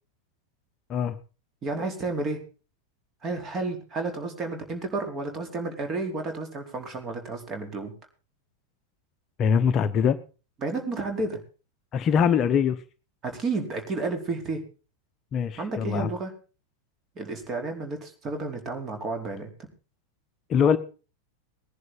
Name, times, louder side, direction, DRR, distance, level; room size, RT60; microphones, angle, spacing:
voice 1, 1.6-2.4 3.2-7.9 10.6-11.4 13.2-14.6 15.6-16.3 17.1-19.5, right 3 dB, 25° right, 4 dB, 4.5 m, -31 dB
voice 2, 9.4-10.2 11.9-12.8 15.3-16.1 20.5-20.8, left 7 dB, 30° left, 10 dB, 0.9 m, -22 dB
20.0 x 11.0 x 4.1 m, 0.35 s
figure-of-eight pair, 90°, 0 cm